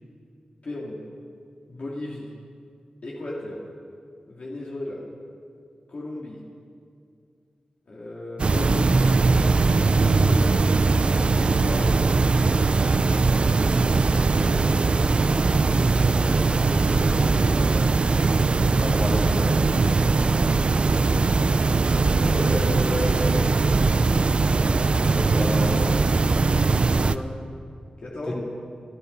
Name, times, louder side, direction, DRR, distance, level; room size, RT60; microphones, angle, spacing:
voice 1, 0.6-1.0 1.7-2.3 3.0-3.6 4.3-5.0 5.9-6.4 7.9-9.2 9.9-10.7 11.3-12.1 14.0-14.8 15.7-17.8 21.9-23.5 26.4-27.3 28.0-28.3, left 1 dB, 60° left, -5 dB, 2.4 m, -34 dB
sound 1, 8.4-27.2, right 3 dB, 45° right, 0.4 m, -20 dB
voice 2, 18.8-19.5 25.1-26.2 28.3-28.4, left 1 dB, 30° left, -2 dB, 3.2 m, -30 dB
25.5 x 12.5 x 4.0 m, 2.3 s
wide cardioid pair, 115°, 3 cm